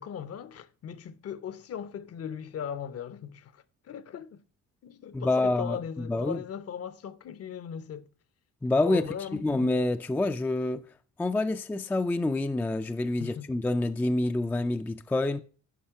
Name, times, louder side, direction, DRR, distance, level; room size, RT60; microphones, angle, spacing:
voice 1, 0.0-4.4 4.8-8.1 8.8-9.7 13.2-13.5, left 8 dB, 50° left, 0.7 m, -38 dB
voice 2, 5.1-6.4 8.6-9.0 9.4-10.9 11.2-15.4, left 2 dB, 5° left, 0.3 m, -27 dB
10.5 x 5.5 x 4.7 m
cardioid pair, 150°, 32 cm